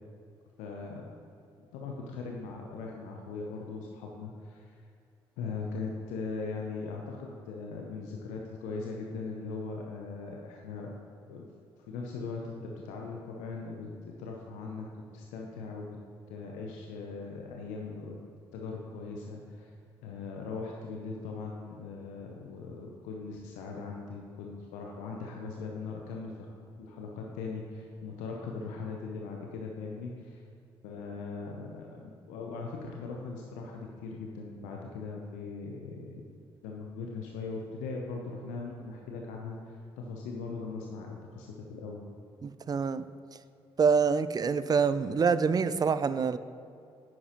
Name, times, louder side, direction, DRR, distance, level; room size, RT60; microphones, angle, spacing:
voice 1, 0.6-1.1 1.7-4.8 5.4-10.9 11.3-11.5 11.8-14.9 15.1-16.0 16.3-18.2 18.5-19.7 20.0-26.3 26.8-30.4 30.8-36.3 36.6-42.1, left 4 dB, 70° left, 0 dB, 0.9 m, -40 dB
voice 2, 42.4-43.1 43.8-46.4, right 5 dB, 30° right, 14 dB, 0.5 m, -26 dB
11.0 x 9.6 x 3.1 m, 2.5 s
figure-of-eight pair, 45°, 13 cm